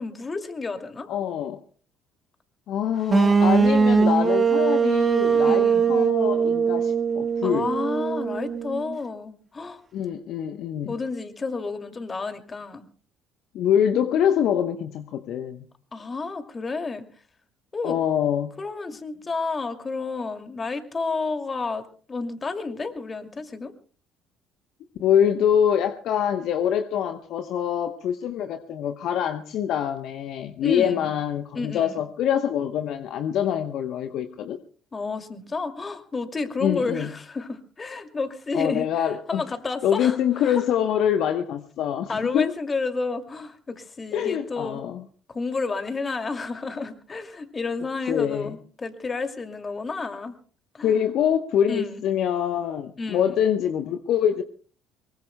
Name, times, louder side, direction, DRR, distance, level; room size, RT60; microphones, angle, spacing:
voice 1, 0.0-1.1 5.4-5.8 7.4-9.8 10.9-12.8 15.9-17.1 17.7-18.0 18.6-23.7 30.6-31.1 31.5-32.0 34.9-40.7 42.1-44.8 45.3-50.3 50.7-51.0 51.7-52.0 53.0-53.4, left 4 dB, 30° left, 7 dB, 2.5 m, -31 dB
voice 2, 1.1-1.6 2.7-7.7 9.9-10.9 13.5-15.7 17.8-18.5 25.0-34.6 36.6-37.1 38.5-39.4 39.8-42.5 44.1-45.0 48.1-48.5 50.8-54.4, left 9 dB, 60° left, 9 dB, 0.9 m, -25 dB
sound 1, 3.1-9.0, right 5 dB, 30° right, 1.6 m, -21 dB
23.5 x 22.5 x 2.2 m, 0.42 s
hypercardioid pair, 55°, 0 cm